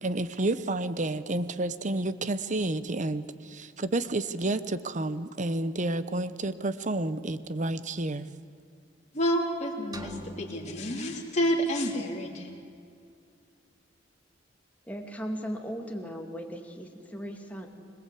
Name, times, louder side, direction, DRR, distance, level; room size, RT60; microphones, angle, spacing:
voice 1, 0.0-8.3, right 2 dB, 40° right, 14 dB, 0.9 m, -30 dB
voice 2, 9.1-12.5, equal, 40° left, -1 dB, 3.7 m, -29 dB
sound 1, 9.9-11.9, right 2 dB, 20° right, 1.4 m, -46 dB
voice 3, 14.8-17.7, equal, 10° left, 1 dB, 2.6 m, -37 dB
25.5 x 20.5 x 8.5 m, 2.4 s
head